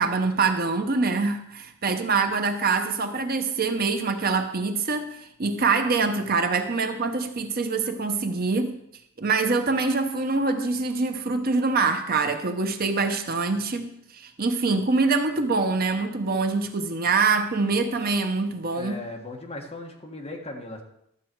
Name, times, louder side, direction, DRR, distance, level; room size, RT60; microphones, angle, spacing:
voice 1, 0.0-8.8 9.2-19.0, right 4 dB, 45° right, 6 dB, 0.8 m, -25 dB
voice 2, 18.7-20.8, left 2 dB, 30° left, 1 dB, 1.5 m, -37 dB
12.5 x 7.6 x 4.6 m, 0.76 s
head